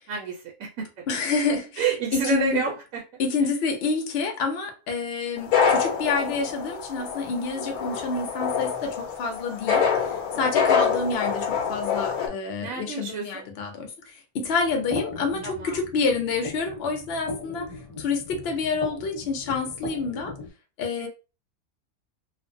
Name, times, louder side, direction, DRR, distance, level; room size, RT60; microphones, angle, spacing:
voice 1, 0.1-1.0 1.8-3.0 10.3-10.5 12.6-13.5 15.4-15.8 21.0-21.1, right 5 dB, 70° right, 0.9 m, -29 dB
voice 2, 1.1-1.8 2.1-2.6 3.2-9.8 10.4-17.7 18.0-20.3 20.8-21.1, left 4 dB, 60° left, 0.7 m, -28 dB
sound 1, 5.4-12.3, left 6 dB, 90° left, 1.1 m, -26 dB
sound 2, 14.4-20.5, left 3 dB, 30° left, 0.9 m, -37 dB
2.5 x 2.0 x 2.5 m
omnidirectional pair, 1.5 m